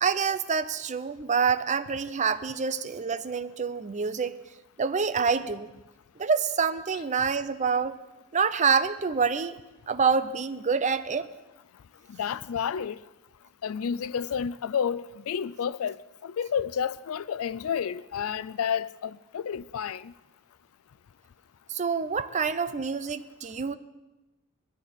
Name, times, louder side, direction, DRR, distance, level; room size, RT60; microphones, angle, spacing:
voice 1, 0.0-4.3 4.8-5.7 6.2-8.0 8.3-9.6 9.9-11.3 21.7-23.7, right 5 dB, 35° right, 13 dB, 0.6 m, -27 dB
voice 2, 12.1-13.0 13.6-20.1, left 7 dB, 70° left, 18 dB, 0.4 m, -30 dB
20.5 x 13.5 x 4.3 m, 1.0 s
head